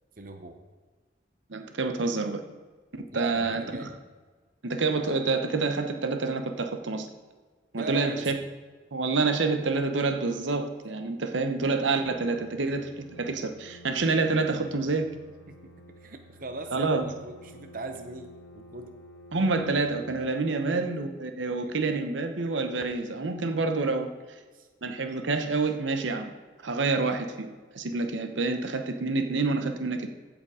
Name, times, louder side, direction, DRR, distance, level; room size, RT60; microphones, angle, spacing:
voice 1, 0.2-0.6 3.1-3.9 7.8-8.3 15.9-18.9 20.5-20.8 21.6-21.7 24.5-24.7, right 3 dB, 45° right, 5 dB, 0.8 m, -40 dB
voice 2, 1.5-2.4 2.9-3.9 4.6-7.1 7.7-8.4 8.9-15.1 16.7-17.0 19.3-24.1 24.8-26.3 26.6-27.5 27.7-30.1, right 3 dB, 80° right, 6 dB, 0.9 m, -27 dB
sound 1, 12.0-20.1, equal, 85° left, 1.1 m, -51 dB
15.5 x 5.2 x 4.9 m, 1.4 s
head